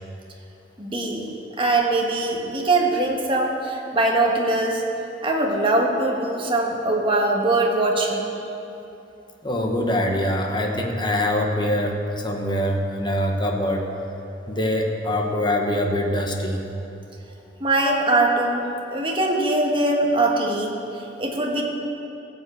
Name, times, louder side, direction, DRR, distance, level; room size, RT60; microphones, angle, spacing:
voice 1, 0.8-1.3 1.6-4.8 5.2-8.3 17.6-18.6 18.9-21.6, right 2 dB, 30° right, 0 dB, 1.5 m, -22 dB
voice 2, 9.4-13.8 14.5-16.6, left 1 dB, 25° left, 2 dB, 1.2 m, -24 dB
15.0 x 5.6 x 7.9 m, 2.8 s
head